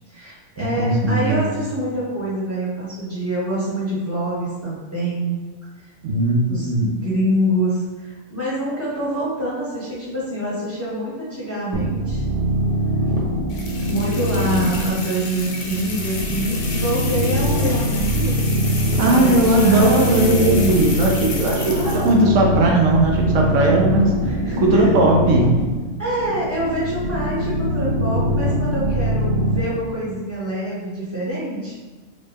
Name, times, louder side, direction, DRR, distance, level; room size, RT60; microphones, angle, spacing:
voice 1, 0.1-5.3 5.8-5.9 6.5-12.2 13.8-18.6 18.9-20.5 21.6-22.5 24.2-25.0 26.0-31.8, right 1 dB, 15° left, -9 dB, 0.7 m, -26 dB
voice 2, 0.6-1.5 6.0-6.9 19.0-24.1 24.6-25.5, right 2 dB, 75° right, -1 dB, 0.9 m, -18 dB
sound 1, 11.7-29.6, equal, 35° right, 0.9 m, -23 dB
sound 2, 13.5-22.2, left 3 dB, 65° left, 0.9 m, -31 dB
3.7 x 2.1 x 3.4 m, 1.2 s
omnidirectional pair, 1.4 m